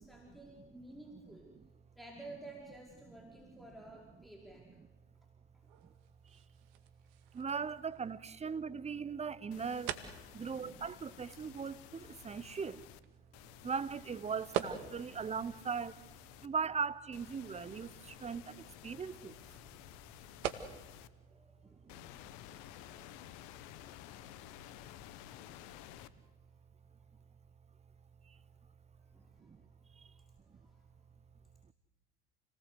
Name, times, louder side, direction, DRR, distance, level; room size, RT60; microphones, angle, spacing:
voice 1, 0.0-1.5 1.9-4.7 10.4-10.7 19.0-19.1 19.5-20.0 20.3-20.6 21.2-21.8 24.2-24.4 25.2-25.5 26.2-26.3 29.0-29.7 30.0-30.9, right 2 dB, ahead, 5.0 m, -54 dB
sound 1, 5.6-23.3, right 10 dB, 65° right, 2.1 m, -48 dB
voice 2, 7.4-9.9 10.3-12.8 13.6-15.9 16.4-17.9 18.2-18.4 18.8-19.3, right 6 dB, 20° right, 1.0 m, -38 dB
sound 2, 9.5-13.0 13.3-16.5 17.1-21.1 21.9-26.1, left 14 dB, 60° left, 1.4 m, -54 dB
29.5 x 19.5 x 8.1 m
hypercardioid pair, 75°, 32 cm